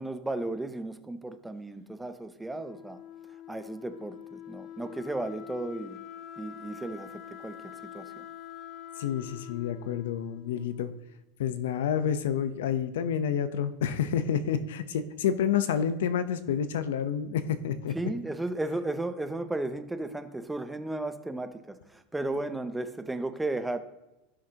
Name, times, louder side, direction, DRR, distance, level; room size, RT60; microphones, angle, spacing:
voice 1, 0.0-3.0 3.5-6.0 6.4-8.2 17.9-23.8, right 2 dB, 5° right, 0.5 m, -34 dB
Wind instrument woodwind instrument, 2.4-11.2, left 10 dB, 40° left, 1.0 m, -45 dB
voice 2, 9.0-10.9 11.4-18.0, left 8 dB, 90° left, 0.8 m, -29 dB
16.0 x 6.3 x 2.9 m
supercardioid pair, 145°, 0 cm